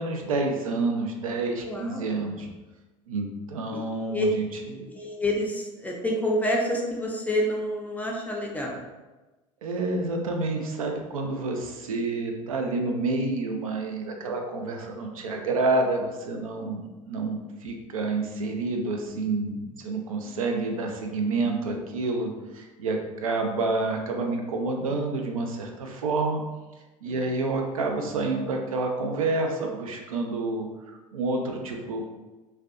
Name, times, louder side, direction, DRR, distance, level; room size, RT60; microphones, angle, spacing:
voice 1, 0.0-2.5 3.1-4.5 4.7-4.9 9.6-26.4 27.0-32.0, right 3 dB, 75° right, 2 dB, 0.4 m, -28 dB
voice 2, 1.6-2.1 3.7-3.8 4.1-4.3 4.7-8.8 27.0-27.1, left 1 dB, 10° left, -1 dB, 0.4 m, -28 dB
2.4 x 2.2 x 2.4 m, 1.1 s
figure-of-eight pair, 70°, 18 cm